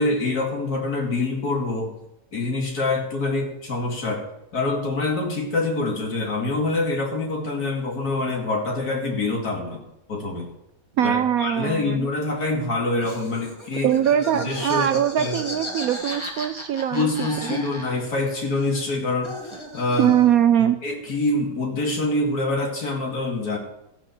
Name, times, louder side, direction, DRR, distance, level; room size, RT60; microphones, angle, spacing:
voice 1, 0.0-2.0 2.3-4.3 4.5-9.8 10.1-10.5 11.0-13.9 14.3-15.4 16.9-20.2 20.6-23.6, left 2 dB, 60° left, 0 dB, 2.8 m, -25 dB
voice 2, 11.0-12.1 13.8-17.6 20.0-20.8, right 10 dB, 70° right, 10 dB, 0.9 m, -21 dB
Laughter, 13.0-18.2 18.4-20.4, left 1 dB, 15° left, 1.7 m, -36 dB
15.0 x 6.0 x 6.4 m, 0.83 s
omnidirectional pair, 1.9 m